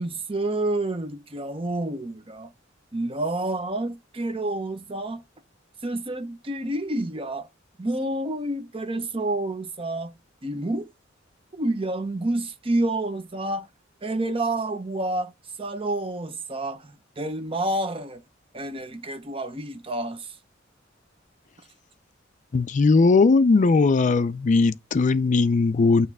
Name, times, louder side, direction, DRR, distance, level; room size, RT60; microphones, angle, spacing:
voice 1, 0.0-2.5 2.9-5.2 5.8-7.5 7.8-10.1 10.4-10.9 11.6-13.7 14.0-15.3 15.6-18.2 18.5-20.3, right 1 dB, 30° right, 0.8 m, -29 dB
voice 2, 22.5-26.1, left 3 dB, 40° left, 0.4 m, -19 dB
8.8 x 3.1 x 3.5 m
head